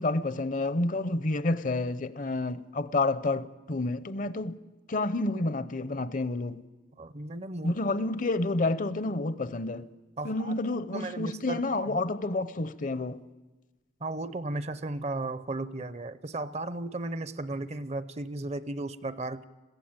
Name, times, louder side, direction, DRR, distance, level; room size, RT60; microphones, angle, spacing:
voice 1, 0.0-4.6 4.9-6.6 7.6-9.8 10.2-13.2, left 2 dB, 45° left, 0.7 m, -29 dB
voice 2, 7.0-7.8 10.2-10.5 10.9-12.0 14.0-19.4, right 2 dB, 35° right, 0.6 m, -35 dB
21.5 x 16.0 x 8.9 m
head